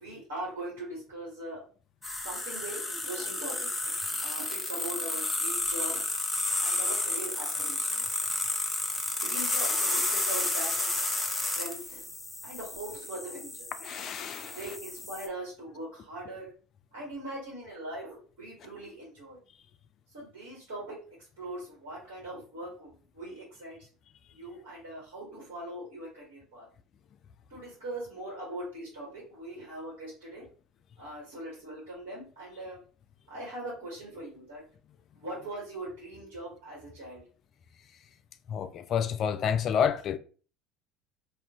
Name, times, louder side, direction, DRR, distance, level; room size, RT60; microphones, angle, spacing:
voice 1, 0.0-1.6 2.2-3.9 4.2-6.1 6.6-8.2 9.2-11.0 11.4-12.0 12.4-13.7 14.6-16.5 16.9-19.4 20.1-20.9 21.4-23.9 24.3-26.7 27.5-30.4 31.0-32.8 33.3-34.6 35.1-37.2, right 1 dB, 75° right, 1.4 m, -41 dB
sound 1, 2.0-15.3, left 2 dB, 15° left, 0.8 m, -31 dB
voice 2, 13.8-14.6 38.5-40.2, left 7 dB, 50° left, 0.3 m, -29 dB
2.4 x 2.4 x 3.5 m
hypercardioid pair, 70°, 0 cm